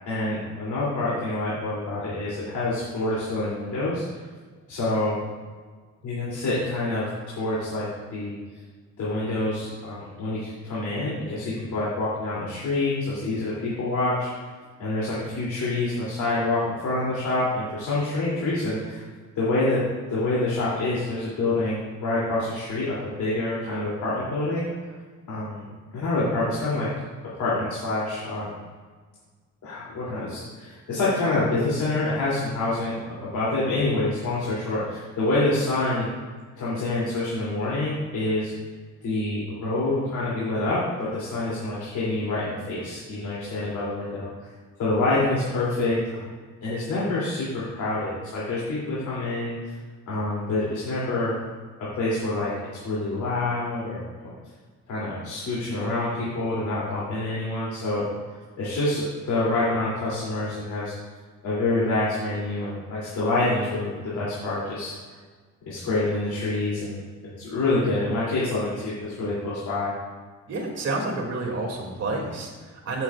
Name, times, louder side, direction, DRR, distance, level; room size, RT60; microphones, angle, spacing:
voice 1, 0.1-4.2 4.7-5.2 6.0-8.4 9.0-14.3 14.8-19.1 19.3-19.8 20.1-24.7 25.3-26.9 27.4-28.5 29.6-36.1 36.6-38.5 39.0-44.5 44.8-46.3 46.6-49.7 50.1-51.3 51.9-54.1 54.9-58.0 58.6-60.9 61.4-64.9 65.6-67.0 67.4-69.9, left 2 dB, 75° left, -8 dB, 3.2 m, -27 dB
voice 2, 70.5-73.0, right 2 dB, 55° right, 0 dB, 2.6 m, -29 dB
16.0 x 8.1 x 2.5 m, 1.5 s
cardioid pair, 110°, 30 cm